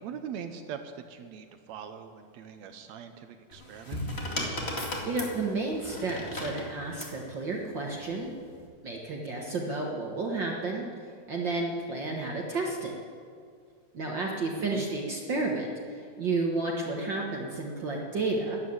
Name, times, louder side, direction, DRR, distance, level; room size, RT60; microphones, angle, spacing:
voice 1, 0.0-4.0 14.4-14.9, right 7 dB, 80° right, 7 dB, 1.6 m, -42 dB
sound 1, 3.5-7.2 8.2-8.6, left 1 dB, 20° left, 1.8 m, -35 dB
voice 2, 5.0-8.3 8.8-10.8 11.3-12.9 13.9-15.7 16.2-18.6, right 3 dB, 55° right, -1 dB, 1.2 m, -31 dB
13.0 x 11.0 x 8.8 m, 2.1 s
omnidirectional pair, 4.1 m